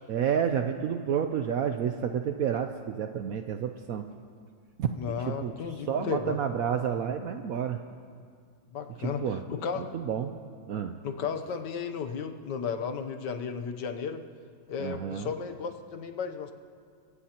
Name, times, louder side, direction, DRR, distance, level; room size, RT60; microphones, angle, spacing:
voice 1, 0.1-4.0 4.8-4.9 5.3-5.5 5.9-7.8 9.0-9.4 9.9-10.3 10.7-10.9 14.8-15.3, right 8 dB, 70° right, 7 dB, 0.8 m, -30 dB
voice 2, 5.0-6.4 8.7-9.9 11.0-14.2 14.7-16.5, left 6 dB, 70° left, 6 dB, 1.4 m, -34 dB
23.5 x 17.0 x 2.9 m, 2.1 s
omnidirectional pair, 2.0 m